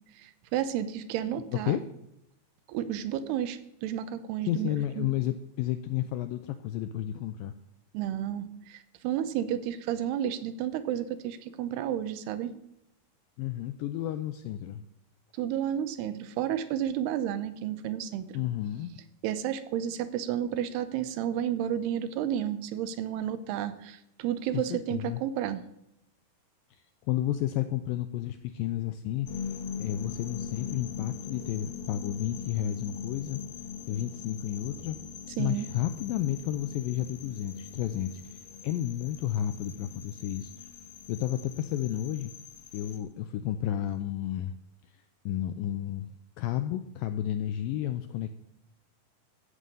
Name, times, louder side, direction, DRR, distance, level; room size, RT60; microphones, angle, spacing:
voice 1, 0.2-1.8 2.7-5.1 7.9-12.5 15.4-18.4 19.2-25.6 35.4-35.7, right 10 dB, 85° right, 12 dB, 2.8 m, -31 dB
voice 2, 4.5-7.5 13.4-14.8 18.3-18.9 24.5-25.2 26.7-33.4 33.9-35.0 35.4-40.7 41.1-42.3 42.7-44.6 44.9-46.1 46.4-48.3, left 12 dB, 85° left, 9 dB, 2.0 m, -32 dB
sound 1, 29.3-43.0, left 6 dB, 65° left, 1.4 m, -41 dB
14.5 x 5.5 x 7.6 m, 0.82 s
omnidirectional pair, 4.6 m